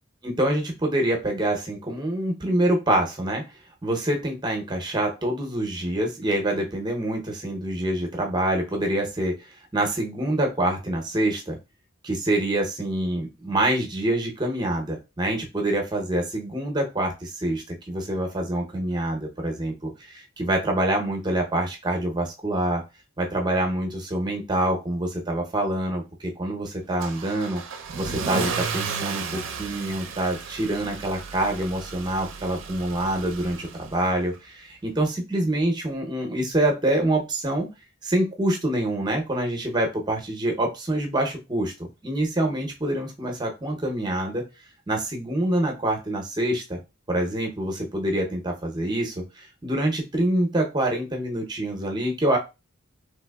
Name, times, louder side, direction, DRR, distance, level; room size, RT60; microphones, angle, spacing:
voice 1, 0.2-3.4 3.8-11.6 12.0-22.8 23.2-27.6 28.0-37.7 38.0-41.7 42.0-44.4 44.9-46.8 47.1-52.4, right 1 dB, 20° right, 2 dB, 0.6 m, -26 dB
Car / Engine starting / Accelerating revving vroom, 27.0-34.1, right 5 dB, 65° right, 0.4 m, -33 dB
3.4 x 2.9 x 2.2 m, 0.26 s
head